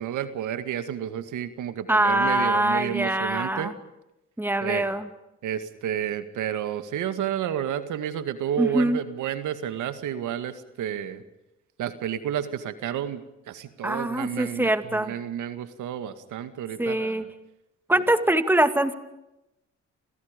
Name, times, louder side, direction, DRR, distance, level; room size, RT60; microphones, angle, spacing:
voice 1, 0.0-3.7 4.6-4.9 5.4-11.2 11.8-17.3, right 10 dB, 80° right, 10 dB, 2.1 m, -31 dB
voice 2, 1.9-3.7 4.4-5.1 8.6-9.0 13.8-15.1 16.8-17.2 17.9-18.9, right 1 dB, 5° right, 9 dB, 2.5 m, -23 dB
29.5 x 28.0 x 5.3 m, 0.91 s
cardioid pair, 90°, 30 cm